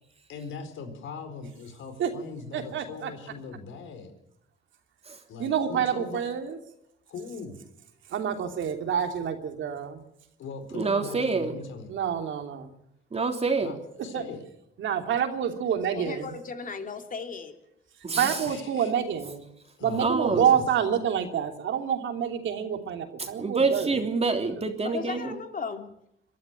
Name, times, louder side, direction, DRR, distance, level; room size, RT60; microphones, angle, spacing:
voice 1, 0.3-4.1 5.3-6.2 7.1-7.6 10.4-11.9 13.6-14.4 18.4-18.9 19.8-20.7, left 4 dB, 80° left, 8 dB, 4.3 m, -40 dB
voice 2, 2.5-3.1 5.4-6.6 8.1-10.0 11.9-12.7 14.1-14.2 14.8-16.3 18.2-19.4 19.8-23.9, right 8 dB, 75° right, 5 dB, 3.0 m, -27 dB
voice 3, 10.7-11.5 13.1-13.7 18.0-18.4 20.0-20.5 23.2-25.4, right 4 dB, 30° right, 4 dB, 3.4 m, -27 dB
voice 4, 15.9-17.6 24.8-25.9, left 5 dB, 45° left, 5 dB, 3.1 m, -36 dB
23.5 x 13.0 x 9.0 m, 0.77 s
cardioid pair, 90°, 20 cm